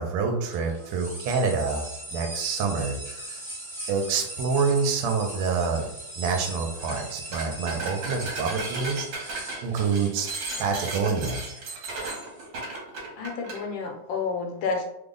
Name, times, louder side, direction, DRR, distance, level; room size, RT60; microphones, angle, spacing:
voice 1, 0.0-3.4 3.9-5.9 6.2-10.3 10.6-11.4, right 5 dB, 85° right, 2 dB, 1.5 m, -27 dB
sound 1, 0.5-12.5, right 1 dB, 30° right, 0.7 m, -40 dB
sound 2, 6.8-7.0 7.3-13.6, right 3 dB, 70° right, 1.5 m, -35 dB
voice 2, 13.2-14.8, left 4 dB, 75° left, 2 dB, 1.2 m, -30 dB
3.5 x 2.0 x 3.7 m, 0.80 s
omnidirectional pair, 2.4 m